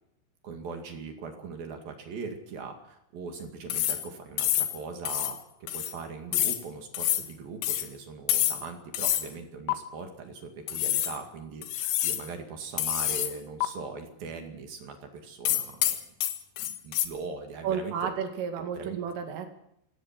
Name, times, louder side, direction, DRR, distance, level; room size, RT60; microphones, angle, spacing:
voice 1, 0.4-16.0 16.8-18.1 18.6-19.0, right 4 dB, 55° right, 4 dB, 3.6 m, -40 dB
sound 1, 3.7-4.1 4.4-4.8 5.1-5.4 5.7-5.9 6.3-6.6 6.9-7.3 7.6-7.9 8.3-8.7 8.9-9.3 9.7-9.8 10.7-11.2 11.6-12.3 12.8-13.3 13.6-13.7 15.5-17.1, left 12 dB, 85° left, 4.0 m, -27 dB
voice 2, 17.6-19.5, right 7 dB, 75° right, 5 dB, 4.7 m, -32 dB
29.0 x 17.5 x 6.0 m, 0.76 s
omnidirectional pair, 5.8 m